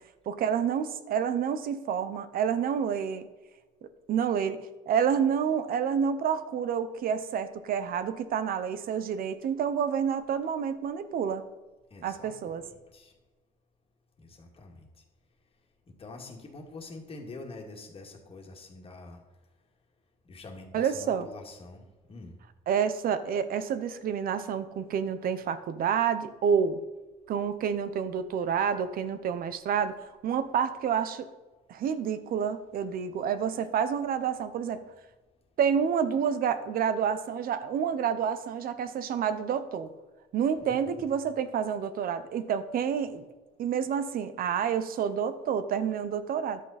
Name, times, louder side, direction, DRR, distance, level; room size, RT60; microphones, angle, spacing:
voice 1, 0.3-3.3 3.8-11.4 12.0-12.6 20.7-21.3 22.7-26.8 27.3-31.3 31.7-34.8 35.6-39.9 40.3-43.3 43.6-46.6, right 7 dB, 60° right, 12 dB, 0.9 m, -29 dB
voice 2, 11.9-13.1 14.2-14.9 16.0-19.2 20.3-21.8 22.1-22.3 40.6-41.1, left 3 dB, 35° left, 1 dB, 2.1 m, -46 dB
11.0 x 8.3 x 4.2 m, 1.2 s
cardioid pair, 110°, 17 cm